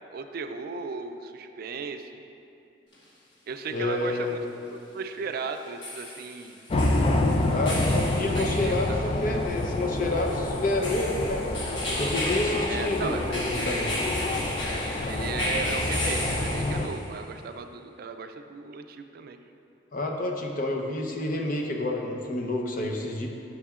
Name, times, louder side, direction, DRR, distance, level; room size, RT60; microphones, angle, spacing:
voice 1, 0.1-2.2 3.5-4.4 4.7-6.6 8.3-9.0 12.7-13.4 15.0-19.4, right 5 dB, 55° right, 7 dB, 0.4 m, -36 dB
sound 1, 2.9-3.0 5.5-17.1, left 1 dB, 90° left, 1.2 m, -35 dB
voice 2, 3.7-4.4 7.5-11.4 12.0-13.9 19.9-23.3, left 2 dB, 50° left, 1 dB, 0.7 m, -29 dB
sound 2, 6.7-16.9, left 1 dB, 35° left, 0.4 m, -28 dB
9.9 x 6.2 x 2.4 m, 2.6 s
head